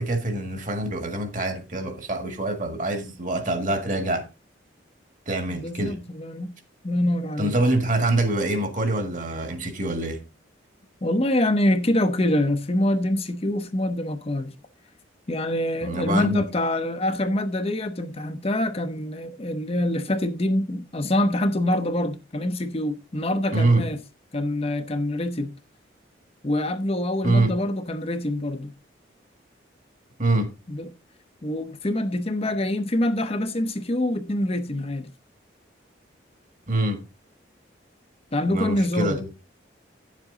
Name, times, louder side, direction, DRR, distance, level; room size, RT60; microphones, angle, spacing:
voice 1, 0.0-4.3 5.3-6.0 7.4-10.2 15.8-16.4 23.5-23.8 27.2-27.5 30.2-30.5 36.7-37.0 38.5-39.3, right 2 dB, 40° right, 1.7 m, -25 dB
voice 2, 5.5-6.5 6.8-7.6 11.0-14.6 15.3-24.0 24.3-25.5 26.4-28.7 30.7-30.9 31.4-35.1 38.3-39.2, left 1 dB, 30° left, 0.7 m, -25 dB
10.5 x 7.5 x 3.8 m
head